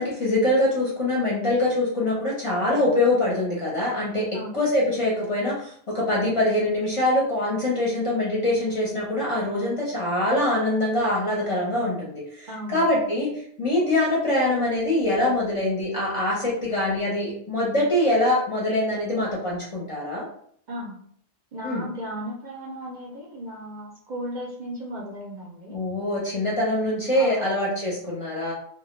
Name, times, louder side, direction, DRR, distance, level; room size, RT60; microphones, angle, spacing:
voice 1, 0.0-13.3 13.6-20.3 21.6-21.8 25.7-28.5, left 1 dB, 35° left, -4 dB, 0.6 m, -24 dB
voice 2, 12.5-12.8 20.7-20.9 21.5-25.8 27.1-27.6, equal, 55° right, -3 dB, 0.6 m, -35 dB
2.2 x 2.1 x 3.0 m, 0.62 s
omnidirectional pair, 1.0 m